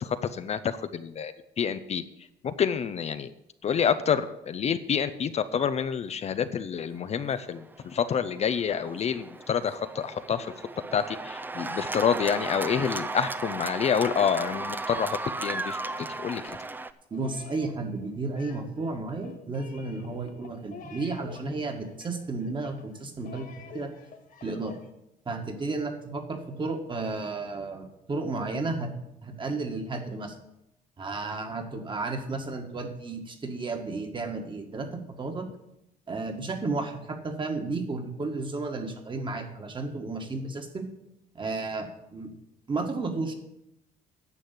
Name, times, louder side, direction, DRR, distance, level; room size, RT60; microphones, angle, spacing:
voice 1, 0.0-2.0 2.4-3.3 3.6-10.5 10.9-15.8 16.2-16.6, left 7 dB, 40° left, 11 dB, 0.6 m, -28 dB
Cheering / Applause, 7.2-16.9, right 2 dB, 10° right, 0.5 m, -35 dB
sound 1, 17.1-24.9, left 6 dB, 55° left, 2.1 m, -48 dB
voice 2, 17.1-23.5 23.7-23.9 24.4-24.8 25.2-28.9 29.2-30.3 31.0-35.5 36.1-40.9 41.3-42.3 42.7-43.3, right 3 dB, 30° right, 5 dB, 1.8 m, -33 dB
10.0 x 6.3 x 8.3 m, 0.83 s
cardioid pair, 110°, 17 cm